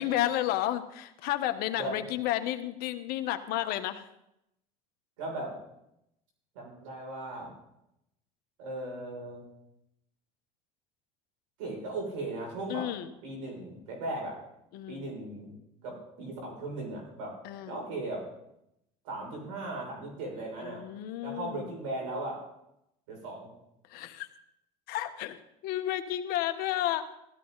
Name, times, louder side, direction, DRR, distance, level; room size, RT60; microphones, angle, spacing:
voice 1, 0.0-4.0 12.7-13.1 14.7-15.1 17.4-17.8 20.6-21.7 23.9-24.3 24.9-25.4 25.6-27.1, left 13 dB, 70° left, 8 dB, 1.3 m, -32 dB
voice 2, 5.2-5.5 6.5-7.5 8.6-9.5 11.6-12.9 13.2-14.4 14.9-15.6 15.8-17.3 17.7-18.2 19.0-20.8 21.2-22.4 23.1-23.5, right 2 dB, 90° right, 0 dB, 6.6 m, -37 dB
16.0 x 13.5 x 4.1 m, 0.83 s
supercardioid pair, 100°, 16 cm